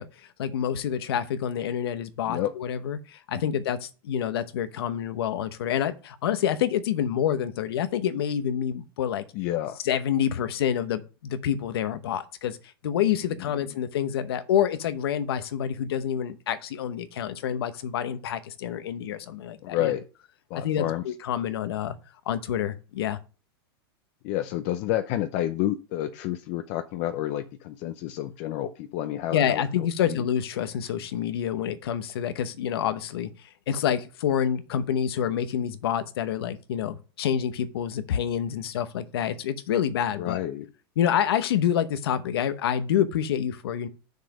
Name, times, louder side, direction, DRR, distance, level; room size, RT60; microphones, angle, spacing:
voice 1, 0.0-9.2 9.8-12.6 12.8-19.9 20.5-22.0 22.3-23.2 29.3-40.4 41.0-43.9, left 9 dB, 80° left, 0.9 m, -27 dB
voice 2, 9.3-9.8 19.6-20.0 20.5-21.0 24.2-30.2 40.2-40.7, left 13 dB, 50° left, 0.6 m, -30 dB
6.5 x 5.0 x 5.5 m
hypercardioid pair, 125°, 13 cm